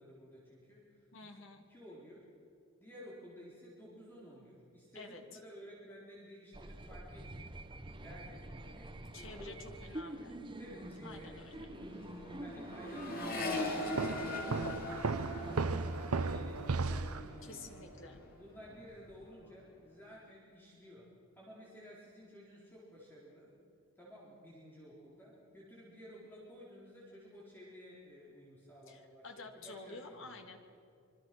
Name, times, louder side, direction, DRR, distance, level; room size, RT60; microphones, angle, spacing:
voice 1, 0.0-2.2 2.8-7.5 8.0-10.3 10.6-12.0 12.4-17.7 18.4-23.5 24.0-30.4, equal, 10° left, -6 dB, 4.2 m, -54 dB
voice 2, 1.1-1.6 4.9-5.2 9.1-10.4 11.0-11.5 17.4-18.2 28.9-30.6, left 3 dB, 60° left, 4 dB, 2.6 m, -50 dB
sound 1, 6.5-15.9, right 1 dB, 20° right, 1.0 m, -47 dB
Accelerating revving vroom, 10.3-10.5 10.8-18.3 18.6-19.2, left 2 dB, 40° left, 3.5 m, -42 dB
sound 2, 14.0-17.7, right 4 dB, 80° right, 0.7 m, -35 dB
26.0 x 24.0 x 6.2 m, 2.6 s
head